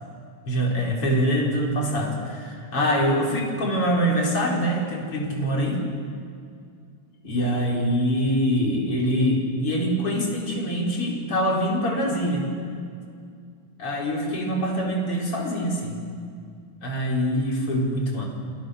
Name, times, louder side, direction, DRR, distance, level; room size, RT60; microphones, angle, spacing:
voice 1, 0.5-5.8 7.2-12.5 13.8-16.0 16.8-18.3, equal, 35° left, -1 dB, 5.2 m, -24 dB
28.0 x 27.5 x 6.6 m, 2.3 s
omnidirectional pair, 4.4 m